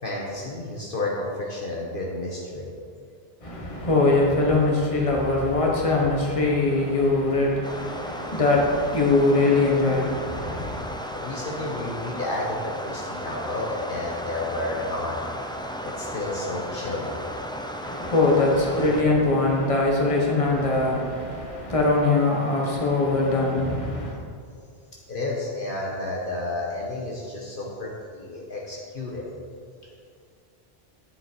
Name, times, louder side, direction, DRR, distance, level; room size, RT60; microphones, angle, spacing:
voice 1, 0.0-2.7 11.1-15.2 15.8-17.2 25.1-29.2, left 2 dB, 60° left, -3 dB, 1.4 m, -31 dB
voice 2, 3.4-10.8 17.8-24.1, left 2 dB, 30° left, -2 dB, 1.6 m, -22 dB
sound 1, 7.6-19.0, equal, 5° left, 0.4 m, -35 dB
10.0 x 7.4 x 4.7 m, 2.2 s
omnidirectional pair, 1.1 m